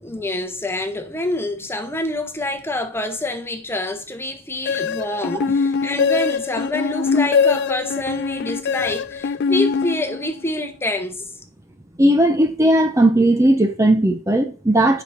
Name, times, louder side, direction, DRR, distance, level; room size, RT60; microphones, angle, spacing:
voice 1, 0.0-11.2, left 1 dB, 10° left, 1.2 m, -26 dB
sound 1, 4.7-10.5, left 5 dB, 55° left, 0.4 m, -22 dB
voice 2, 12.0-15.0, right 1 dB, 15° right, 0.7 m, -16 dB
7.0 x 6.0 x 7.2 m
head